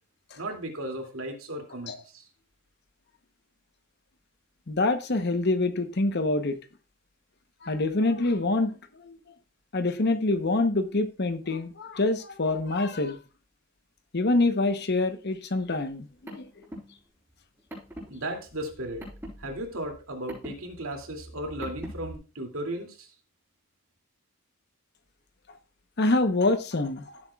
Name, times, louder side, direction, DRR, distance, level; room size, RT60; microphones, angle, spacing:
voice 1, 0.3-2.2 18.1-19.0 19.4-23.1, right 1 dB, 75° right, 2.5 m, -35 dB
voice 2, 4.7-6.6 7.6-9.1 9.7-13.2 14.1-16.5 26.0-27.0, left 2 dB, 50° left, 0.9 m, -26 dB
Car, 15.9-22.2, equal, 10° right, 6.2 m, -44 dB
16.0 x 8.0 x 2.4 m
head